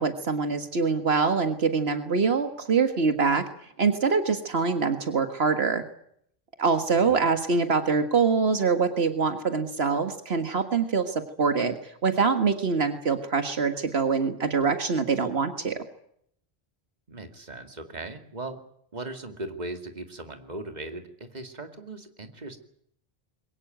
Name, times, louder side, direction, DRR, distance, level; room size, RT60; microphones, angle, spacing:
voice 1, 0.0-5.8 6.6-15.9, right 5 dB, 75° right, 8 dB, 1.9 m, -24 dB
voice 2, 6.9-7.3 17.1-18.6 18.9-22.6, right 2 dB, 40° right, 6 dB, 2.6 m, -38 dB
23.0 x 18.5 x 9.2 m, 0.69 s
omnidirectional pair, 1.1 m